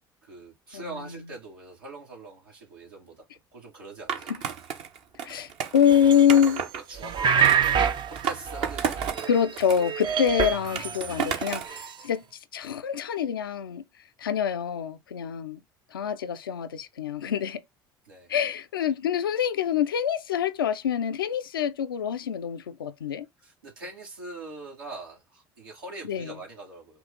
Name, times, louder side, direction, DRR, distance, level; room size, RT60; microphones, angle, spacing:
voice 1, 0.2-3.2 3.5-4.3 6.9-9.4 18.0-18.3 23.4-27.0, right 2 dB, 80° right, 2.2 m, -42 dB
Skateboard, 4.1-6.8 7.4-9.3 9.6-11.8, right 7 dB, 60° right, 1.1 m, -33 dB
voice 2, 5.2-6.6 9.3-12.2 12.5-13.8 14.2-15.6 15.9-17.6 18.3-23.3 26.0-26.3, left 8 dB, 85° left, 0.5 m, -25 dB
sound 1, 5.9-6.7 7.0-9.5 9.8-11.9, right 8 dB, 40° right, 0.6 m, -27 dB
5.9 x 2.4 x 3.6 m
figure-of-eight pair, 60°, 11 cm